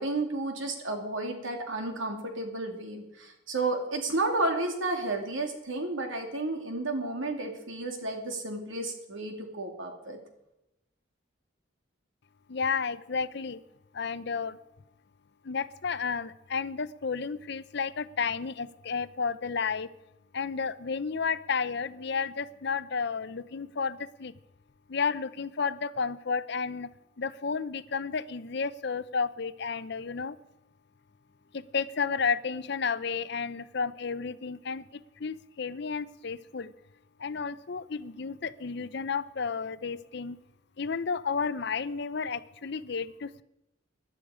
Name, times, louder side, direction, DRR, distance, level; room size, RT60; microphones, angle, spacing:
voice 1, 0.0-10.2, right 2 dB, 80° right, 4 dB, 2.6 m, -32 dB
voice 2, 12.5-13.6 13.9-14.6 15.4-19.9 20.3-24.3 24.9-26.9 27.2-30.4 31.5-36.7 37.2-40.4 40.8-43.4, left 5 dB, 60° left, 15 dB, 0.6 m, -32 dB
18.0 x 11.5 x 5.0 m, 0.89 s
head